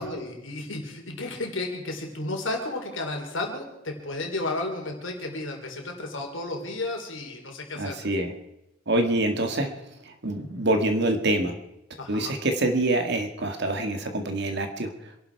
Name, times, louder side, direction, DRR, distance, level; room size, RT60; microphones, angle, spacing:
voice 1, 0.0-8.0 12.0-12.4, left 2 dB, 70° left, 2 dB, 3.7 m, -33 dB
voice 2, 7.8-8.3 8.9-9.7 10.0-11.6 12.1-14.9, right 1 dB, 55° right, 5 dB, 2.0 m, -25 dB
26.0 x 11.5 x 4.7 m, 0.90 s
head